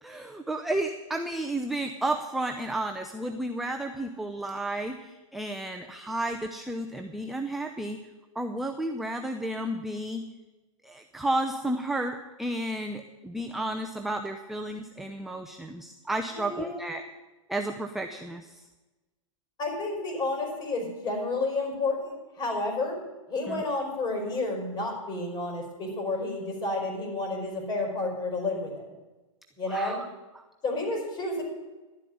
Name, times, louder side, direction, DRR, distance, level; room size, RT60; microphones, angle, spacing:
voice 1, 0.0-8.0 8.3-10.2 10.8-17.0 17.5-18.6 23.5-23.6 29.7-30.1 30.3-30.4, right 1 dB, ahead, 4 dB, 0.6 m, -32 dB
voice 2, 16.3-16.7 19.6-23.0 23.3-28.8 29.6-30.0 30.6-31.4, left 2 dB, 25° left, 2 dB, 4.7 m, -30 dB
11.5 x 7.5 x 9.5 m, 1.1 s
hypercardioid pair, 130°, 17 cm